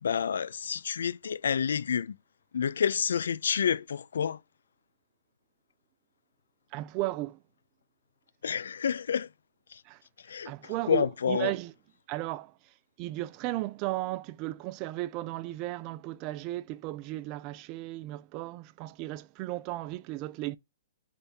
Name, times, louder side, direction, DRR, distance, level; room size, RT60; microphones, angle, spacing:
voice 1, 0.0-2.2 2.5-4.4 8.4-9.3 9.7-9.8 10.2-11.5, left 7 dB, 80° left, 0.3 m, -29 dB
voice 2, 6.7-7.4 9.9-10.0 10.5-11.7 12.1-12.5 13.0-20.6, right 17 dB, 30° right, 0.3 m, -35 dB
3.6 x 3.4 x 4.1 m
hypercardioid pair, 145°, 0 cm